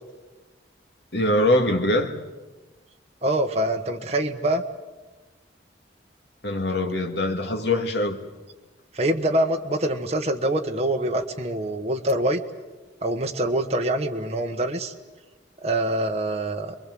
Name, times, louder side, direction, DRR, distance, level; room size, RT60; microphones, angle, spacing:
voice 1, 1.1-2.2 6.4-8.2, left 1 dB, 65° left, 2.2 m, -23 dB
voice 2, 3.2-4.6 8.9-12.4 13.0-14.9 15.6-16.7, right 1 dB, 35° right, 1.3 m, -25 dB
28.5 x 22.0 x 7.8 m
head